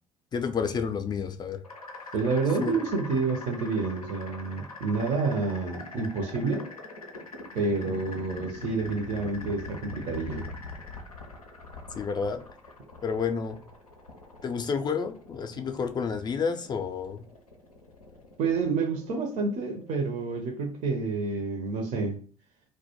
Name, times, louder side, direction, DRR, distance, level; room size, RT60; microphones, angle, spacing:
voice 1, 0.3-1.6 2.6-2.7 7.9-8.0 11.9-12.4 13.0-13.6 14.4-17.2, left 6 dB, 25° left, 0.3 m, -30 dB
sound 1, 1.6-20.4, left 2 dB, 90° left, 0.4 m, -44 dB
voice 2, 2.1-6.7 7.5-10.5 15.6-15.7 18.4-22.2, right 4 dB, 40° right, 0.5 m, -29 dB
2.1 x 2.1 x 2.8 m
figure-of-eight pair, 55°, 18 cm